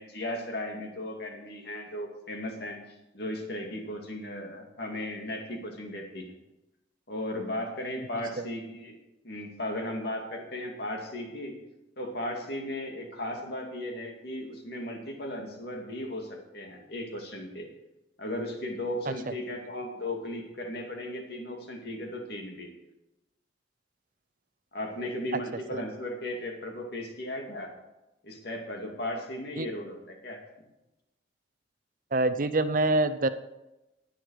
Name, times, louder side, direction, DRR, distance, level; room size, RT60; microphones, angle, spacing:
voice 1, 0.0-2.8 3.1-6.3 7.1-8.9 9.2-11.5 12.0-17.7 18.2-22.7 24.7-27.7 28.2-30.4, left 1 dB, 60° left, 2 dB, 2.3 m, -36 dB
voice 2, 8.1-8.5 19.1-19.3 25.7-25.8 29.6-29.7 32.1-33.3, right 2 dB, 45° right, 12 dB, 0.7 m, -26 dB
19.5 x 6.6 x 4.8 m, 0.96 s
head